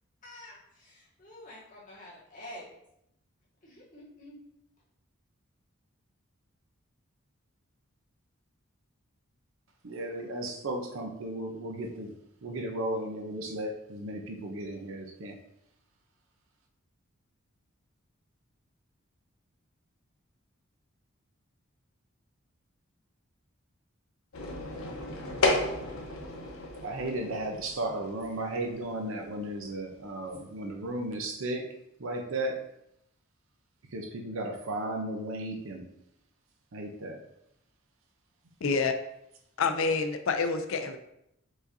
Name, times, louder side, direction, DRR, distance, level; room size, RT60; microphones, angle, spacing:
voice 1, 0.2-2.6 3.6-4.3, left 1 dB, 35° left, -7 dB, 1.7 m, -48 dB
voice 2, 9.8-12.1 12.4-15.4 26.8-31.7 32.0-32.6 33.9-35.9 36.7-37.2, right 1 dB, 70° right, 2 dB, 0.6 m, -35 dB
sound 1, 24.3-31.0, left 2 dB, 85° left, 1.0 m, -34 dB
voice 3, 38.6-38.9 39.6-41.0, left 4 dB, 70° left, 6 dB, 0.5 m, -27 dB
4.9 x 4.0 x 2.6 m, 0.80 s
head